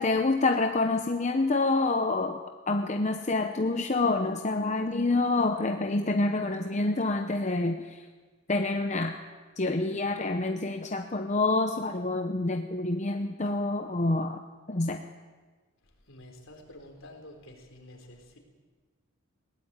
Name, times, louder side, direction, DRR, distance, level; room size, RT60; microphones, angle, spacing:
voice 1, 0.0-2.4 2.7-8.0 8.5-9.2 9.6-14.4 14.7-15.0, left 2 dB, 35° left, 5 dB, 0.8 m, -27 dB
voice 2, 15.8-18.4, left 1 dB, 65° left, 3 dB, 4.1 m, -49 dB
20.5 x 17.5 x 8.9 m, 1.4 s
head